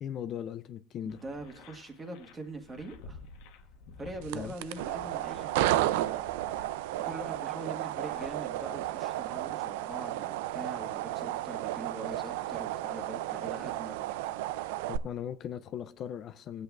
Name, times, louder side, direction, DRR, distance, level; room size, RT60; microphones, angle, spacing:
voice 1, 0.0-1.2 4.3-4.5 14.9-16.6, left 9 dB, 40° left, 0.4 m, -38 dB
voice 2, 1.0-3.2 4.0-6.2 7.0-14.0, right 2 dB, 20° right, 1.5 m, -42 dB
sound 1, 1.1-8.4, left 4 dB, 75° left, 1.0 m, -52 dB
sound 2, 4.2-15.0, right 15 dB, 90° right, 0.4 m, -33 dB
20.0 x 8.1 x 2.4 m
cardioid pair, 135°, 0 cm